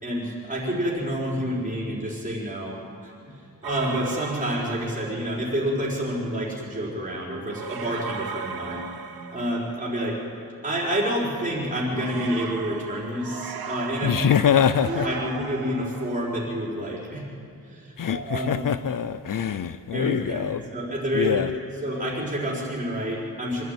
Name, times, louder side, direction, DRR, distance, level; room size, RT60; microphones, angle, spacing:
voice 1, 0.0-3.3 3.6-8.8 9.3-10.2 10.6-14.3 14.9-17.3 17.7-18.6 19.9-21.4 21.8-23.6, equal, 20° right, 4.9 m, -28 dB
sound 1, 3.6-5.4 7.5-10.0 11.9-16.3, right 6 dB, 85° right, 1.2 m, -37 dB
voice 2, 14.0-15.1 18.0-20.6 21.1-21.5, left 8 dB, 65° left, 0.6 m, -23 dB
25.0 x 12.0 x 9.3 m
wide cardioid pair, 135°, 36 cm